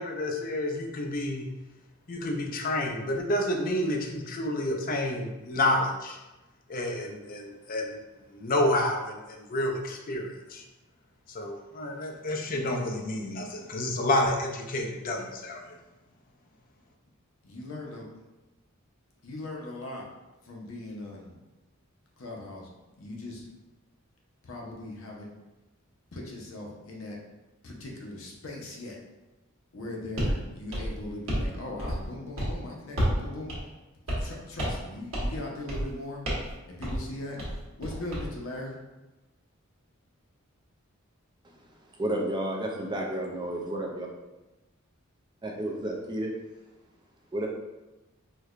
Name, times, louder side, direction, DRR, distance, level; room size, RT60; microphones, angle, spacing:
voice 1, 0.0-1.5 2.1-6.2 6.7-8.0 8.3-10.6 11.3-15.8, left 1 dB, 40° left, 2 dB, 0.4 m, -29 dB
voice 2, 17.4-18.1 19.2-20.0 20.4-21.4 22.2-22.7 23.0-23.5 24.4-25.3 26.1-27.2 27.6-29.0 29.7-33.5 34.2-36.2 36.7-37.4 37.8-38.8, left 2 dB, 70° left, -1 dB, 0.7 m, -39 dB
sound 1, 30.2-30.4 30.7-31.5 31.8-32.1 32.4-32.6 33.0-33.2 33.5-33.6 34.1-34.3 34.6-34.9 35.1-35.4 35.7-35.9 36.2-36.5 36.8-37.0 37.4-38.3, equal, 80° right, 1.1 m, -30 dB
voice 3, 42.0-44.1 45.4-46.4 47.3-47.5, right 1 dB, 20° right, 0 dB, 0.4 m, -31 dB
4.5 x 2.2 x 2.4 m, 1.1 s
head